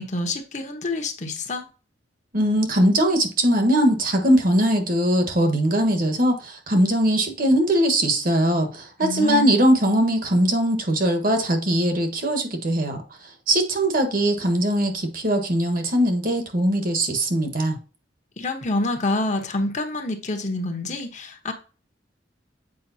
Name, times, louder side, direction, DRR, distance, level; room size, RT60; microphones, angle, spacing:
voice 1, 0.0-1.7 9.0-9.5 18.4-21.5, left 2 dB, 40° left, 1.0 m, -27 dB
voice 2, 2.3-13.0 13.5-17.8, right 1 dB, 50° right, 1.4 m, -21 dB
7.7 x 5.1 x 2.8 m
head